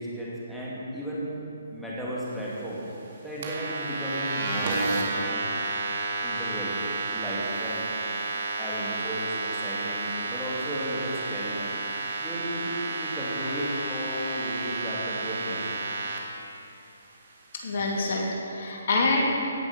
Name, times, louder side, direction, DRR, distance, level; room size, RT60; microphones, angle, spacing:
voice 1, 0.0-1.4 1.7-2.8 3.2-5.5 6.2-6.8 7.1-7.9 8.6-11.6 12.2-15.7, equal, ahead, -9 dB, 2.4 m, -34 dB
sound 1, 3.4-16.2, right 3 dB, 50° right, 2.0 m, -31 dB
voice 2, 17.6-19.3, left 2 dB, 55° left, -1 dB, 2.3 m, -26 dB
17.0 x 6.1 x 6.1 m, 2.7 s
hypercardioid pair, 150°, 0 cm